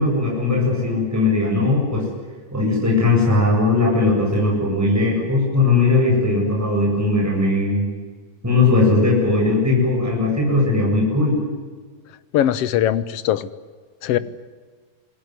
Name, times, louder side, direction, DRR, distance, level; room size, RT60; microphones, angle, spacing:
voice 1, 0.0-2.1 2.5-7.9 8.4-11.4, left 3 dB, 5° right, -2 dB, 7.9 m, -18 dB
voice 2, 12.3-13.5 14.0-14.2, left 11 dB, 65° left, 14 dB, 1.6 m, -20 dB
27.5 x 20.0 x 9.7 m, 1.5 s
omnidirectional pair, 3.7 m